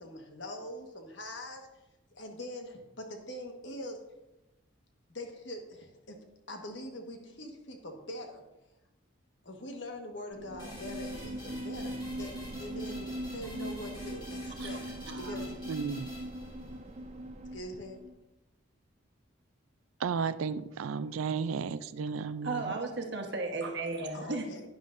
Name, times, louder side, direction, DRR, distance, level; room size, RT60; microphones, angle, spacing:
voice 1, 0.0-1.7 2.1-4.0 5.1-6.2 6.5-8.4 9.4-14.8 15.2-15.6 17.5-18.0 24.1-24.6, left 1 dB, 60° left, 3 dB, 1.4 m, -43 dB
sound 1, 10.3-18.1, right 1 dB, 35° right, 0.6 m, -40 dB
sound 2, 10.6-17.0, left 1 dB, 20° left, 3.7 m, -49 dB
voice 2, 15.0-15.4 22.4-24.5, right 3 dB, 55° right, 2 dB, 1.3 m, -35 dB
voice 3, 15.7-16.1 20.0-22.7, right 5 dB, 85° right, 14 dB, 0.4 m, -33 dB
11.5 x 10.0 x 2.6 m, 0.96 s
head